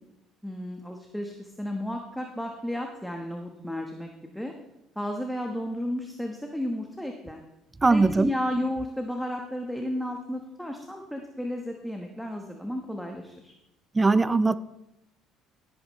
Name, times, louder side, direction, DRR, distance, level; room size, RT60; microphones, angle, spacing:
voice 1, 0.4-4.5 4.9-7.4 7.9-13.5, left 1 dB, ahead, 2 dB, 1.2 m, -33 dB
voice 2, 7.8-8.3 13.9-14.5, right 3 dB, 20° right, 16 dB, 0.5 m, -20 dB
16.0 x 9.0 x 3.2 m, 0.87 s
supercardioid pair, 85°, 0 cm